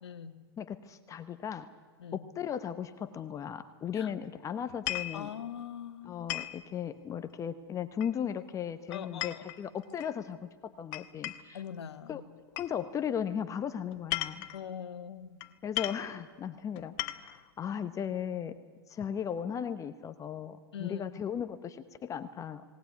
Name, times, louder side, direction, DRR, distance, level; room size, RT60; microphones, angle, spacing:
voice 1, 0.0-0.4 2.0-2.2 3.9-4.1 5.1-6.3 8.9-9.4 11.5-12.2 14.5-15.4 20.7-21.0, left 8 dB, 85° left, 10 dB, 1.6 m, -42 dB
voice 2, 0.6-1.7 2.1-5.3 6.0-11.6 12.1-12.2 12.5-14.5 15.6-18.5 18.9-22.6, left 8 dB, 25° left, 11 dB, 1.0 m, -36 dB
sound 1, 4.7-5.2 6.3-6.6 8.0-8.4 8.9-10.1 10.9-11.6 12.6-12.7 13.9-14.6 15.4-15.5 15.8-16.1 16.8-17.4, left 16 dB, 50° left, 1.1 m, -36 dB
19.5 x 18.0 x 9.5 m, 1.5 s
hypercardioid pair, 125°, 14 cm